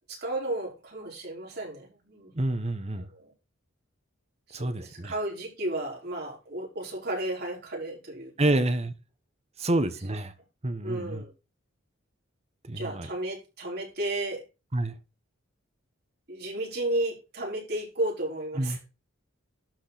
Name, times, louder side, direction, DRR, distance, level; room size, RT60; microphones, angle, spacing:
voice 1, 0.1-2.3 3.1-3.3 4.5-8.6 9.6-9.8 10.8-11.3 12.7-14.4 16.3-18.9, right 1 dB, 50° right, 5.0 m, -33 dB
voice 2, 2.3-3.1 4.5-5.1 8.4-8.9 9.6-10.3 10.6-11.2 12.7-13.1 14.7-14.9 18.6-18.8, right 1 dB, 30° right, 1.2 m, -28 dB
12.0 x 5.1 x 4.2 m
head